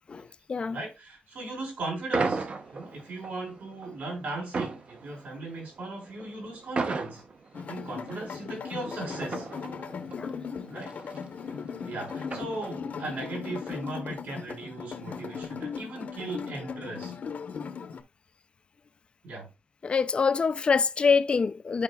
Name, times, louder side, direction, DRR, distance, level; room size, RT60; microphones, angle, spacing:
voice 1, 0.1-0.8 10.2-10.4 19.8-21.8, left 5 dB, 35° left, 0.4 m, -25 dB
voice 2, 0.7-2.5 2.7-7.2 7.7-9.5 10.7-10.9 11.8-17.1 19.2-19.5, right 2 dB, 75° right, 4.3 m, -37 dB
sound 1, 2.1-13.1, right 4 dB, 40° right, 0.8 m, -36 dB
sound 2, 7.5-18.0, left 6 dB, 55° left, 0.9 m, -38 dB
12.0 x 5.0 x 2.2 m
wide cardioid pair, 165°, 3 cm